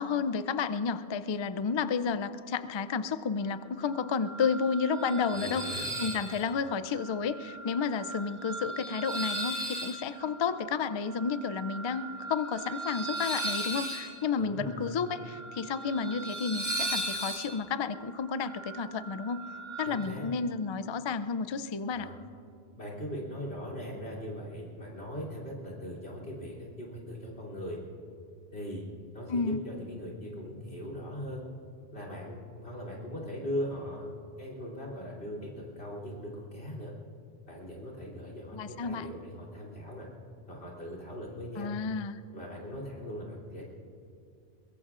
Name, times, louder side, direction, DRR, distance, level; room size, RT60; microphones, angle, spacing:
voice 1, 0.0-19.4 19.8-22.1 29.3-29.6 38.5-39.1 41.6-42.2, left 5 dB, 50° left, 13 dB, 0.3 m, -31 dB
sound 1, 3.9-20.0, right 1 dB, 65° right, 3.9 m, -38 dB
voice 2, 5.3-5.8 14.3-14.9 19.9-20.3 21.9-22.1 22.7-27.8 28.5-28.9 29.1-31.4 31.9-34.1 34.4-36.9 37.5-40.1 40.5-41.7 42.3-43.6, equal, 75° left, -2 dB, 3.5 m, -40 dB
22.5 x 22.0 x 2.5 m, 2.4 s
omnidirectional pair, 1.1 m